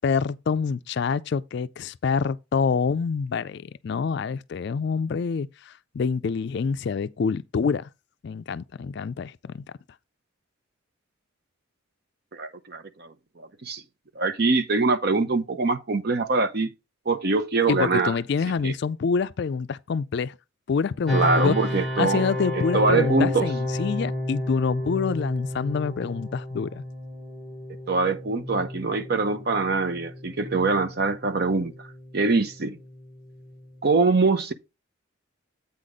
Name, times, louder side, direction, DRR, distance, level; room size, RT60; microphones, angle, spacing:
voice 1, 0.0-7.9 8.2-9.6 17.7-20.3 20.7-21.5 22.0-26.8, left 5 dB, 55° left, 0.3 m, -26 dB
voice 2, 12.3-13.8 14.2-16.7 17.1-18.1 18.6-18.7 21.1-22.3 22.5-23.5 27.9-31.9 32.1-32.8 33.8-34.5, right 3 dB, 50° right, 0.7 m, -23 dB
sound 1, 21.1-33.9, left 1 dB, ahead, 1.2 m, -32 dB
8.3 x 4.1 x 4.9 m
head